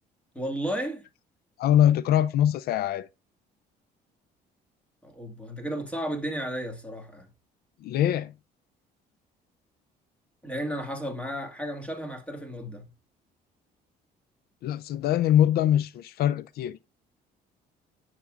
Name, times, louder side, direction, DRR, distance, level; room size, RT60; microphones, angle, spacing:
voice 1, 0.3-1.0 5.0-7.3 10.4-12.9, equal, 5° left, 1.8 m, -33 dB
voice 2, 1.6-3.1 7.8-8.3 14.6-16.8, left 11 dB, 65° left, 0.4 m, -23 dB
10.0 x 6.8 x 2.4 m
cardioid pair, 110°, 17 cm